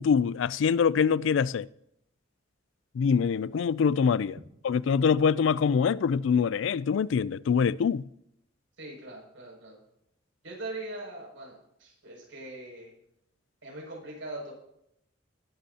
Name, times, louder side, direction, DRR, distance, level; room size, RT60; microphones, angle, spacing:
voice 1, 0.0-1.7 2.9-4.4 4.6-8.0, left 6 dB, 70° left, 0.3 m, -24 dB
voice 2, 8.8-9.8 10.4-12.9 13.6-14.5, right 2 dB, 80° right, 6.3 m, -41 dB
19.5 x 11.5 x 2.8 m
head